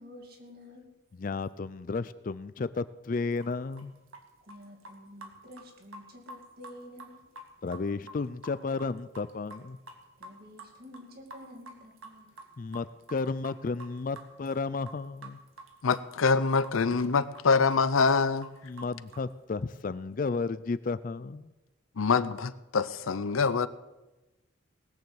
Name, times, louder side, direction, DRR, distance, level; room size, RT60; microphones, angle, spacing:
voice 1, 0.0-0.9 4.4-7.3 10.2-12.3, left 1 dB, 50° right, 2.6 m, -50 dB
voice 2, 1.1-3.9 7.6-9.8 12.6-15.4 18.6-21.5, left 4 dB, 40° left, 0.4 m, -33 dB
sound 1, 3.3-4.2 4.5-5.0 5.2-10.0 10.2-10.3 10.6-16.4 16.6-19.4, right 1 dB, 90° right, 2.0 m, -47 dB
voice 3, 15.8-18.5 22.0-23.7, left 4 dB, 85° left, 0.6 m, -25 dB
19.0 x 7.1 x 7.8 m
head